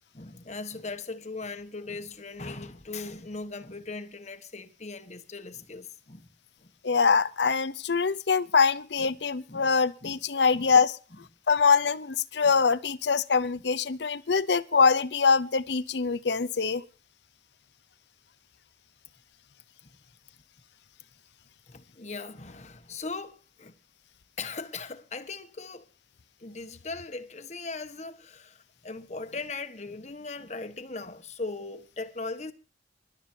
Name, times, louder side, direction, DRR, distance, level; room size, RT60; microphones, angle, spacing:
voice 1, 0.1-6.3 6.6-6.7 9.0-9.1 9.5-9.7 10.0-10.1 10.5-10.6 12.4-12.5 21.7-23.7 24.4-25.9 26.4-32.5, left 3 dB, 40° left, 1.3 m, -39 dB
voice 2, 6.8-10.9 11.5-16.8, left 5 dB, 75° left, 0.7 m, -24 dB
26.0 x 12.0 x 2.8 m
head